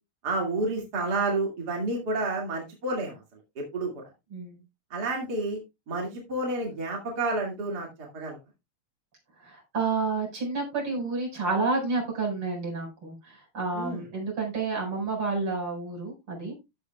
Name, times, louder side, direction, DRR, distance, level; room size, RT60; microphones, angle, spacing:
voice 1, 0.2-3.2 3.6-4.0 4.9-5.6 5.9-8.4 13.7-14.0, right 2 dB, 50° right, 0 dB, 2.6 m, -30 dB
voice 2, 9.4-16.6, right 3 dB, 85° right, -2 dB, 5.8 m, -30 dB
13.5 x 8.0 x 2.2 m, 0.23 s
omnidirectional pair, 2.3 m